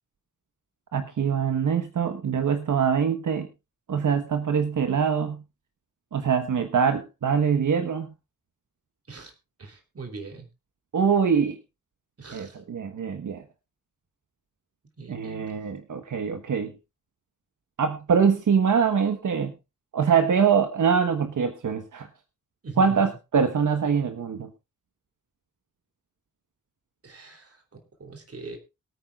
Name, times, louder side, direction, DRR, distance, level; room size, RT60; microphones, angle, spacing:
voice 1, 0.9-3.5 3.9-5.4 6.1-8.1 10.9-11.6 12.3-13.4 15.1-16.7 17.8-19.5 19.9-22.1 22.8-24.5, right 6 dB, 80° right, 7 dB, 1.3 m, -24 dB
voice 2, 9.6-10.5 12.2-12.6 15.0-15.6 22.6-23.2 27.0-28.6, right 4 dB, 50° right, 4 dB, 3.2 m, -41 dB
23.0 x 9.1 x 2.4 m, 0.26 s
wide cardioid pair, 165°, 30 cm